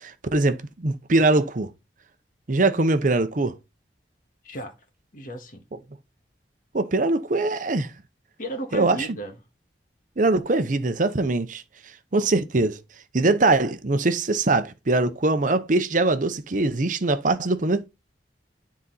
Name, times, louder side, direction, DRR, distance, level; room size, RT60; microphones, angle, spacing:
voice 1, 0.0-1.7 2.5-3.6 6.7-7.9 8.7-9.0 10.2-11.6 12.1-12.8 13.1-17.9, right 2 dB, 45° right, 0.7 m, -22 dB
voice 2, 4.4-4.8 5.1-5.6 8.4-9.4, right 1 dB, 50° left, 1.7 m, -34 dB
9.9 x 4.1 x 4.1 m
head